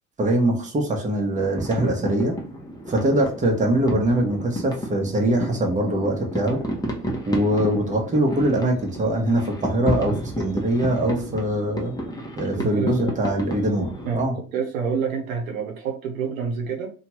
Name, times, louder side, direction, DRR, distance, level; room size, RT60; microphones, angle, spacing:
voice 1, 0.2-2.3 2.9-6.6 7.3-12.0 12.4-13.9 14.1-14.3, right 1 dB, 20° right, 1 dB, 0.9 m, -22 dB
sound 1, 1.3-14.2, equal, 10° left, 0.7 m, -32 dB
voice 2, 12.6-13.1 14.0-14.2 14.5-16.9, right 6 dB, 80° right, 3 dB, 0.8 m, -27 dB
2.8 x 2.3 x 2.9 m, 0.39 s
hypercardioid pair, 70°, 41 cm